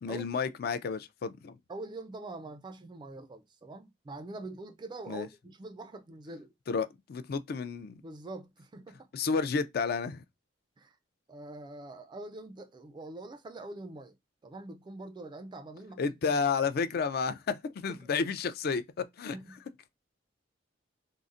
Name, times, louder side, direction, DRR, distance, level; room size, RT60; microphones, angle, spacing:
voice 1, 0.0-1.6 5.1-5.3 6.7-8.0 9.1-10.2 16.0-19.4, left 5 dB, 55° left, 0.4 m, -31 dB
voice 2, 1.7-6.5 8.0-9.1 10.8-11.0 11.3-14.2 14.4-16.4 17.9-18.1 19.3-19.6, right 2 dB, 25° right, 0.3 m, -44 dB
3.8 x 2.1 x 2.4 m
head